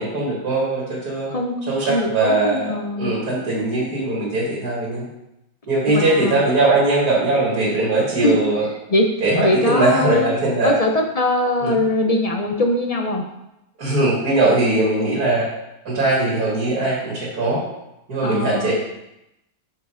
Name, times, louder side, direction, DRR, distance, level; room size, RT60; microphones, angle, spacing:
voice 1, 0.0-1.3 1.7-5.1 5.7-8.6 9.2-10.8 11.6-11.8 13.8-15.5 15.8-17.6 18.1-18.7, right 2 dB, 85° right, -5 dB, 2.5 m, -20 dB
voice 2, 1.9-3.1 5.9-6.4 8.2-8.5 8.9-9.1 9.4-10.3 10.6-13.2 18.2-18.7, left 2 dB, 50° left, 2 dB, 0.4 m, -21 dB
7.3 x 4.7 x 4.9 m, 0.88 s
omnidirectional pair, 1.6 m